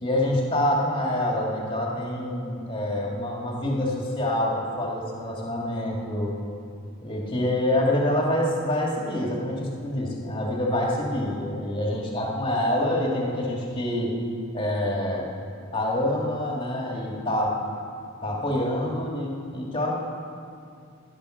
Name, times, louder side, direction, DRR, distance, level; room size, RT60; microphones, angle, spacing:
voice 1, 0.0-6.3 7.0-14.1 14.5-15.3 15.7-17.6 18.2-19.9, left 1 dB, 25° left, -2 dB, 2.3 m, -26 dB
16.0 x 11.0 x 6.5 m, 2.4 s
head